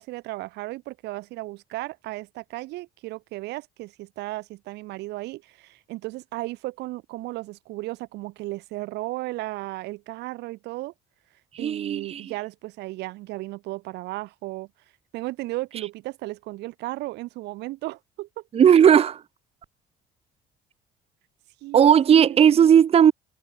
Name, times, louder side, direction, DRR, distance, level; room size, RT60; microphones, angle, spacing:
voice 1, 0.0-10.9 11.6-14.7 15.1-18.4 21.6-22.7, right 19 dB, 85° right, 2.0 m, -35 dB
voice 2, 11.5-12.2 18.5-19.2 21.7-23.1, right 8 dB, 35° right, 0.6 m, -16 dB
cardioid pair, 110°, 17 cm